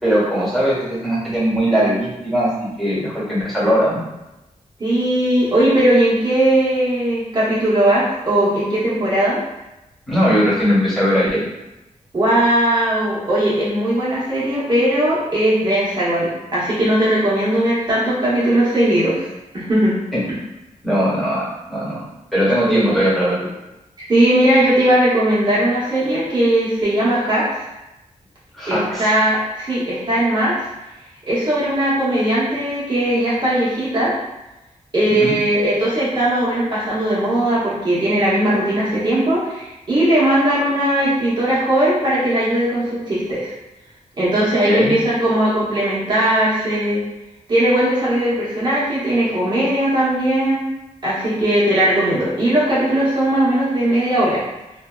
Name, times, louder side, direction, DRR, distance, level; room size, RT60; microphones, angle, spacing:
voice 1, 0.0-2.5 2.8-4.0 10.1-11.4 20.8-22.0 22.3-23.5 28.6-29.1 35.1-35.3 44.4-44.9, equal, ahead, -9 dB, 1.4 m, -19 dB
voice 2, 4.8-9.4 12.1-19.3 19.5-20.0 22.7-22.8 24.0-27.6 28.7-30.6 31.3-34.1 34.9-43.5 44.2-47.0 47.5-50.6 51.0-54.4, right 1 dB, 35° right, -9 dB, 1.0 m, -18 dB
2.6 x 2.2 x 2.3 m, 0.98 s
wide cardioid pair, 85°, 13 cm